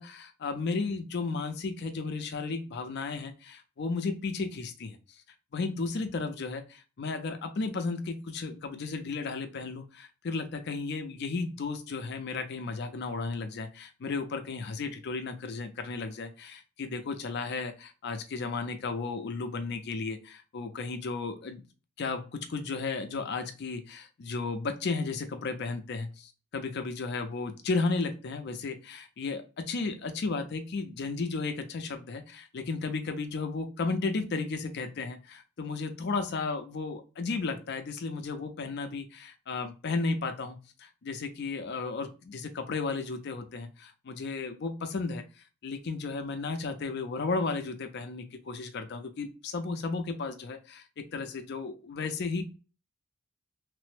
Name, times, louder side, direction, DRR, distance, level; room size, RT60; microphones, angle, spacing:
voice 1, 0.0-5.0 5.5-21.6 22.0-45.2 45.6-52.4, left 4 dB, 50° left, 7 dB, 0.4 m, -34 dB
3.2 x 2.0 x 3.1 m, 0.33 s
head